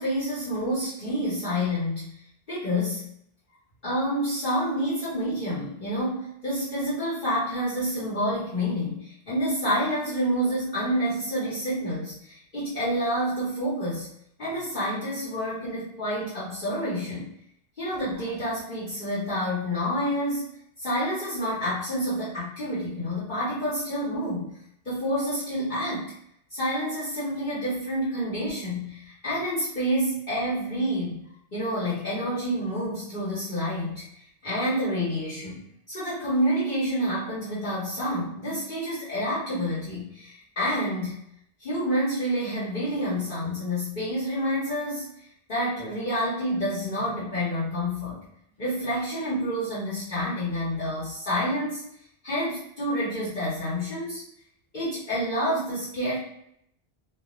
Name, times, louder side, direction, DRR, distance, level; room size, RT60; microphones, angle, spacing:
voice 1, 0.0-2.2 2.5-3.0 3.8-14.1 14.4-17.3 17.8-20.5 20.8-24.5 24.8-26.1 26.5-31.2 31.5-35.6 35.9-41.1 41.6-48.2 48.6-51.9 52.2-54.2 54.7-56.2, equal, 50° left, -11 dB, 1.1 m, -28 dB
2.4 x 2.2 x 2.9 m, 0.72 s
omnidirectional pair, 1.1 m